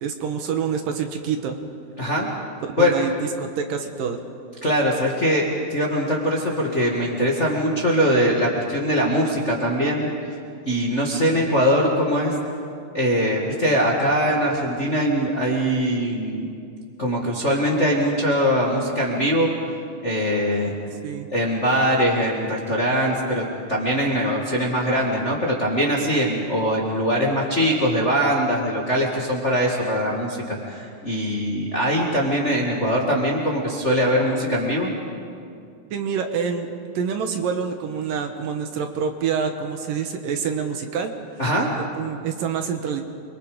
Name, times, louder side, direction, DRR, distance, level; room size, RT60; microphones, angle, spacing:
voice 1, 0.0-1.6 2.7-4.2 21.0-21.3 35.9-36.7 36.9-41.1 41.7-43.0, right 6 dB, 70° right, 5 dB, 2.7 m, -27 dB
voice 2, 2.0-2.3 2.8-2.9 4.6-10.3 10.6-12.3 12.9-16.5 17.0-19.7 20.0-20.7 21.3-34.9 41.4-41.7, equal, 25° left, -2 dB, 1.7 m, -22 dB
29.0 x 23.5 x 5.1 m, 2.4 s
omnidirectional pair, 4.4 m